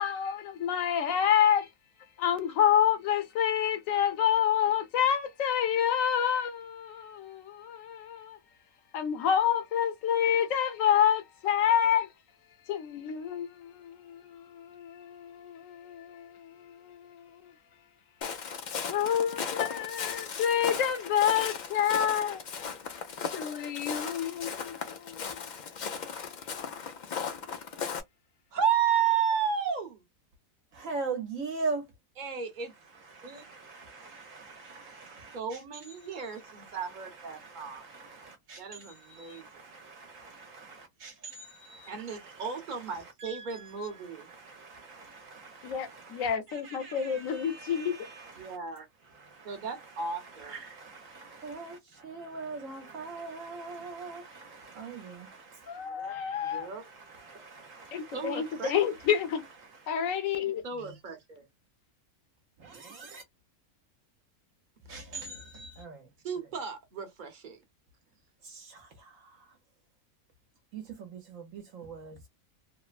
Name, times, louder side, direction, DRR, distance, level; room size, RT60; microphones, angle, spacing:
voice 1, 0.0-1.7 2.2-8.4 8.9-12.1 12.7-17.2 18.9-22.4 23.3-25.4 45.6-47.9 55.7-56.7 57.9-59.4 59.9-60.6, left 9 dB, 70° left, 1.0 m, -28 dB
Walk footsteps, 18.2-28.0, left 6 dB, 90° left, 0.4 m, -37 dB
voice 2, 28.5-30.0 32.2-32.7 33.2-33.4 35.3-37.9 38.6-39.4 41.9-44.3 48.4-48.9 49.4-50.8 56.4-56.8 58.1-58.8 60.6-61.4 66.2-67.6, right 7 dB, 40° right, 0.9 m, -33 dB
voice 3, 30.7-31.9 32.8-35.6 36.0-48.6 49.0-60.1 60.7-61.0 62.6-63.2 64.9-66.1 68.4-69.6 70.7-72.3, right 4 dB, 65° right, 1.1 m, -43 dB
3.2 x 2.1 x 2.3 m
omnidirectional pair, 1.5 m